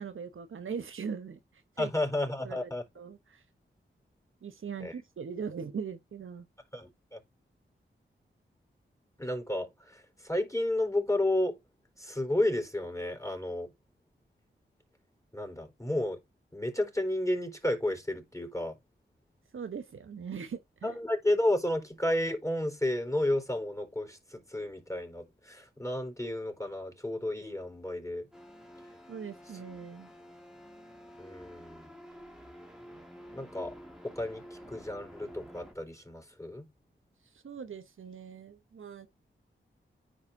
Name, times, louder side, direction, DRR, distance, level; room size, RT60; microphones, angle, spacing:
voice 1, 0.0-1.4 1.8-1.9 2.4-2.7 2.9-3.4 4.4-6.5 19.5-21.0 29.1-30.1 37.3-39.1, right 6 dB, 75° right, 0.9 m, -40 dB
voice 2, 1.8-2.8 4.8-4.9 6.7-7.2 9.2-11.6 12.0-13.7 15.3-16.2 16.5-18.8 20.8-28.3 31.2-31.9 33.3-33.7 34.0-36.7, left 1 dB, 15° left, 4.0 m, -32 dB
sound 1, 28.3-35.7, equal, 5° right, 2.5 m, -50 dB
10.0 x 4.7 x 2.7 m
cardioid pair, 45°, 21 cm